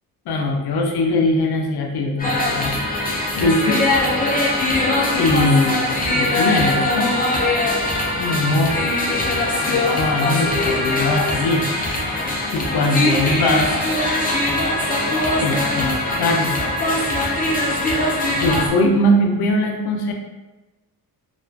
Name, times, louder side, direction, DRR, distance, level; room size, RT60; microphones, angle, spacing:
voice 1, 0.3-3.8 5.2-5.8 6.1-7.1 7.9-8.8 9.7-11.7 12.0-13.7 15.4-16.5 18.4-20.1, left 2 dB, 85° left, 2 dB, 0.5 m, -21 dB
sound 1, 2.2-18.7, left 1 dB, 25° left, 0.3 m, -21 dB
2.4 x 2.3 x 2.3 m, 1.1 s
wide cardioid pair, 140°, 38 cm